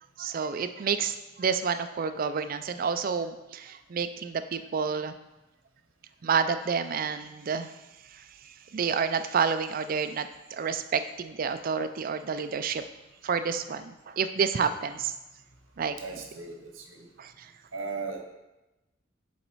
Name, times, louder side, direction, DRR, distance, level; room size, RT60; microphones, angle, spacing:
voice 1, 0.2-5.1 6.2-7.7 8.1-12.9 13.2-15.1 15.8-16.0 17.2-17.5, right 6 dB, 45° right, 10 dB, 0.4 m, -29 dB
voice 2, 12.0-12.3 16.0-17.1 17.7-18.2, right 4 dB, 80° right, 3 dB, 1.1 m, -38 dB
7.2 x 4.0 x 4.6 m, 0.99 s
head